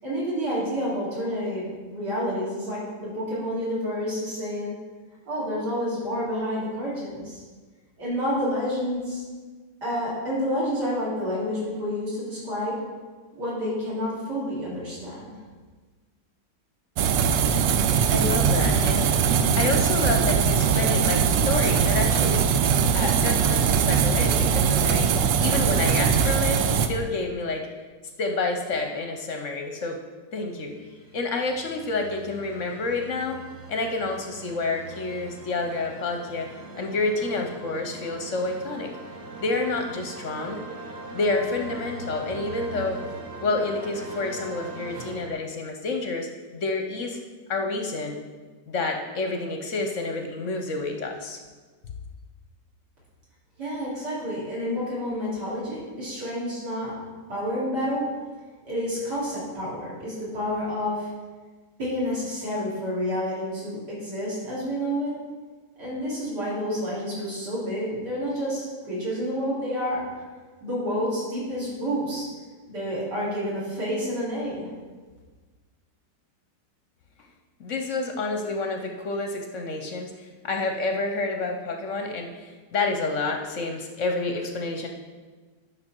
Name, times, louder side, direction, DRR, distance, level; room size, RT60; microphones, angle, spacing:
voice 1, 0.0-4.7 5.3-7.4 8.0-9.2 9.8-12.8 13.3-15.3 53.6-56.9 57.3-58.1 58.6-61.1 61.8-65.2 65.8-70.0 70.6-72.3 72.7-74.7, equal, 65° right, -8 dB, 4.0 m, -29 dB
sound 1, 17.0-26.9, right 7 dB, 85° right, 1.3 m, -21 dB
voice 2, 18.1-19.1 19.5-22.6 22.9-27.7 28.2-30.0 30.3-30.7 31.1-33.4 33.7-38.9 39.4-40.6 41.1-43.0 43.4-47.2 47.5-48.2 48.7-51.4 77.6-84.9, left 3 dB, 55° left, 4 dB, 0.9 m, -29 dB
sound 2, 30.6-45.3, right 3 dB, 40° right, 0.7 m, -41 dB
11.0 x 5.8 x 4.5 m, 1.4 s
omnidirectional pair, 2.0 m